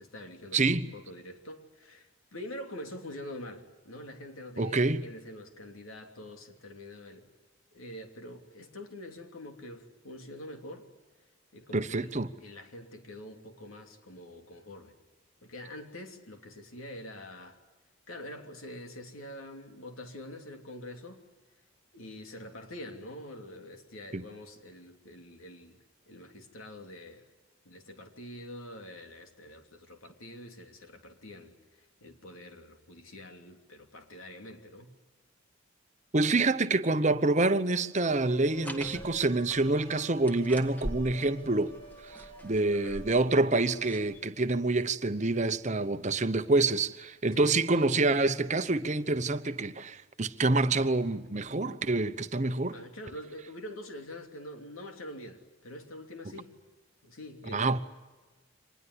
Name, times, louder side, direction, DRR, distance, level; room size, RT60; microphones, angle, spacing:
voice 1, 0.0-7.3 7.7-10.9 11.5-12.1 12.4-14.9 15.4-17.6 18.1-21.2 21.9-25.8 26.1-27.3 27.6-34.9 42.7-43.0 47.3-47.5 52.7-56.5 57.0-57.8, left 1 dB, 80° left, 3.0 m, -45 dB
voice 2, 0.5-0.9 4.6-5.0 11.7-12.3 24.1-24.2 36.1-41.7 42.0-52.7 57.5-57.8, right 2 dB, 35° right, 0.9 m, -27 dB
sound 1, 38.0-44.2, right 4 dB, 30° left, 2.7 m, -50 dB
sound 2, 38.5-44.3, equal, 10° left, 1.6 m, -44 dB
25.5 x 20.0 x 9.7 m
head